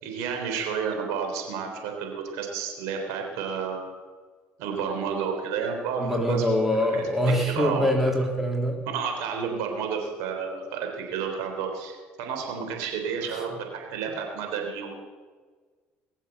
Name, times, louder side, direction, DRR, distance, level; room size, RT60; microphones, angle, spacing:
voice 1, 0.0-4.0 4.6-6.4 6.9-7.0 7.5-7.9 8.9-14.9, right 6 dB, 80° right, 2 dB, 3.6 m, -31 dB
voice 2, 6.0-8.8 13.2-13.4, left 1 dB, 5° right, 0 dB, 3.1 m, -24 dB
21.0 x 7.3 x 8.0 m, 1.5 s
supercardioid pair, 75°, 5 cm